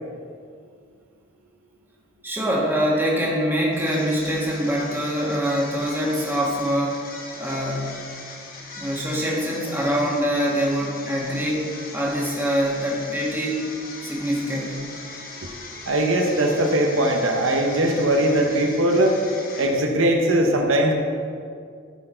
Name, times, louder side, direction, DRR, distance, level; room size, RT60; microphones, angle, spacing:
voice 1, 2.2-7.0 7.4-8.0 8.8-13.6 14.0-14.8, equal, 10° right, -4 dB, 1.5 m, -24 dB
sound 1, 3.7-20.1, left 3 dB, 45° left, 1.2 m, -39 dB
voice 2, 15.9-19.2 19.6-20.9, right 1 dB, 75° right, 2 dB, 0.9 m, -20 dB
13.0 x 4.6 x 4.4 m, 2.2 s
head